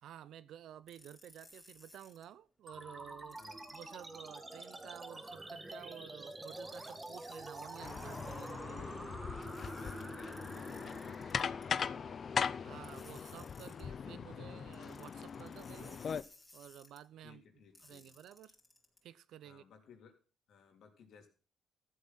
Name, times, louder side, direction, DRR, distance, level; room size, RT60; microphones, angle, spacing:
voice 1, 0.0-3.4 3.7-8.9 12.6-16.0 16.5-17.4 17.8-18.5 19.0-19.6, right 11 dB, 75° right, 0.7 m, -52 dB
sound 1, 0.9-2.2 3.3-5.0 6.3-8.5 9.4-11.7 12.8-13.8 14.7-17.0 17.7-19.0, left 2 dB, 15° left, 4.4 m, -60 dB
sound 2, 2.7-13.6, right 2 dB, 15° right, 1.8 m, -48 dB
sound 3, 7.8-16.2, left 6 dB, 50° left, 0.6 m, -40 dB
voice 2, 9.5-12.3 17.2-18.1 19.4-20.1 20.5-21.3, left 6 dB, 70° left, 3.5 m, -60 dB
14.0 x 8.2 x 5.8 m
cardioid pair, 90°, 0 cm